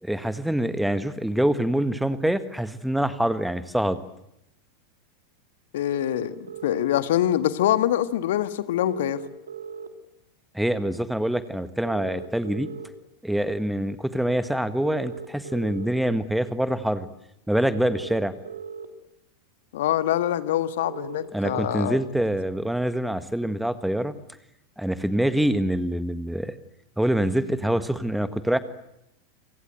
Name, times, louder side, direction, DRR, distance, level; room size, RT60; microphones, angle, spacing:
voice 1, 0.0-4.0 10.5-12.7 13.2-17.1 17.5-18.3 21.3-24.1 24.8-26.5 27.0-28.6, right 1 dB, ahead, 13 dB, 1.6 m, -25 dB
voice 2, 5.7-6.3 6.6-9.2 19.7-22.0, left 12 dB, 60° left, 12 dB, 1.7 m, -24 dB
sound 1, 5.9-6.9 8.9-9.9 11.8-12.9 14.8-15.9 17.8-18.9 20.8-21.9, right 6 dB, 70° right, 3.1 m, -38 dB
28.0 x 27.0 x 8.0 m, 0.81 s
figure-of-eight pair, 90°, 0 cm